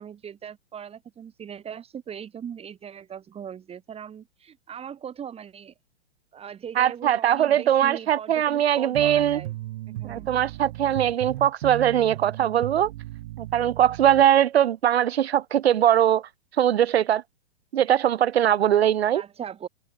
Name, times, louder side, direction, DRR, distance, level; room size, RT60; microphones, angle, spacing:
voice 1, 0.0-5.7 6.3-9.5 9.9-10.3 19.1-19.7, right 8 dB, 20° right, 4.4 m, -39 dB
voice 2, 6.8-9.4 10.0-12.9 13.4-16.2 16.6-17.2 17.7-19.2, right 10 dB, 70° right, 0.8 m, -21 dB
sound 1, 8.9-14.3, right 16 dB, 45° right, 1.1 m, -36 dB
figure-of-eight pair, 115°, 33 cm